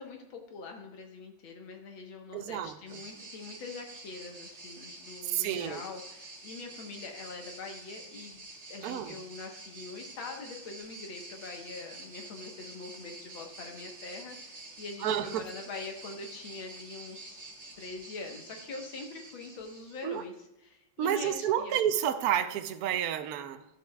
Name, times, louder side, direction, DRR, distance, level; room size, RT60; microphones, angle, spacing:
voice 1, 0.0-17.5 17.8-20.3 20.6-21.8, left 4 dB, 80° left, 2.0 m, -44 dB
voice 2, 2.3-3.0 5.3-5.8 8.8-9.2 15.0-15.5 20.0-20.2 21.0-23.6, right 10 dB, 70° right, 0.9 m, -30 dB
sound 1, 2.9-20.2, right 2 dB, 40° right, 1.5 m, -48 dB
12.5 x 6.8 x 2.3 m
omnidirectional pair, 2.2 m